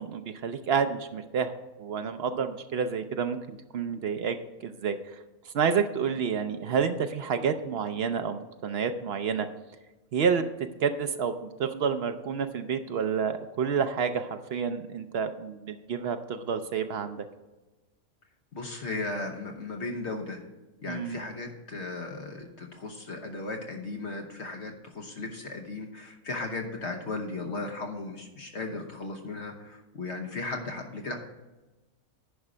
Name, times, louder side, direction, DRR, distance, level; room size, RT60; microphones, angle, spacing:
voice 1, 0.0-1.5 1.8-4.4 4.6-5.0 5.5-9.5 10.1-10.5 10.8-17.3 20.9-21.2, right 6 dB, 60° right, 8 dB, 0.6 m, -29 dB
voice 2, 18.5-20.4 20.8-31.2, left 3 dB, 50° left, 2 dB, 1.2 m, -36 dB
10.0 x 5.5 x 4.9 m, 1.1 s
omnidirectional pair, 1.5 m